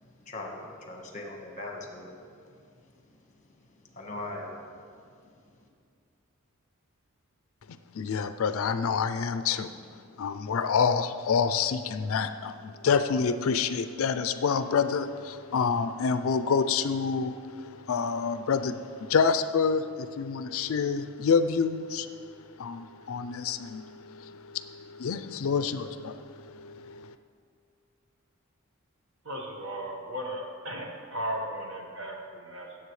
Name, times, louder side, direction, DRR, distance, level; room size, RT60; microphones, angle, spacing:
voice 1, 0.0-5.7, left 2 dB, 35° left, 1 dB, 1.3 m, -42 dB
voice 2, 7.9-9.7 10.2-22.1 22.6-27.1, left 5 dB, 65° left, 11 dB, 0.4 m, -28 dB
voice 3, 29.2-32.8, right 1 dB, 60° right, 0 dB, 1.4 m, -36 dB
16.5 x 7.5 x 3.2 m, 2.2 s
head